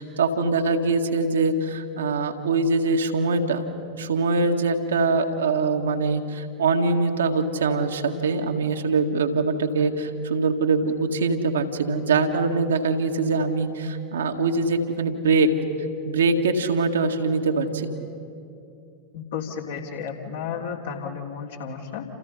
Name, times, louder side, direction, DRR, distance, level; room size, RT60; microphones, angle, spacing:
voice 1, 0.0-3.6 4.0-15.5 16.1-17.9, right 3 dB, 65° right, 3 dB, 1.9 m, -23 dB
voice 2, 19.1-22.0, left 7 dB, 60° left, 0 dB, 3.3 m, -33 dB
29.0 x 28.5 x 5.6 m, 2.6 s
figure-of-eight pair, 90°, 0 cm